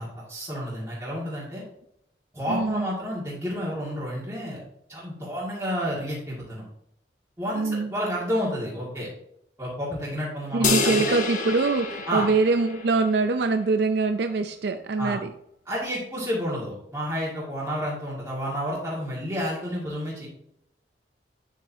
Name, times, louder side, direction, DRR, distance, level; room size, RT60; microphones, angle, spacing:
voice 1, 0.0-1.6 2.3-4.6 4.9-6.6 7.4-9.1 9.6-11.0 12.1-12.3 15.0-15.2 15.7-20.3, equal, 15° right, -8 dB, 2.0 m, -30 dB
voice 2, 2.5-2.9 7.5-7.9 10.5-15.3, right 3 dB, 65° right, 7 dB, 0.5 m, -24 dB
sound 1, 10.6-13.2, left 4 dB, 45° left, 1.1 m, -28 dB
9.1 x 7.3 x 2.7 m, 0.77 s
head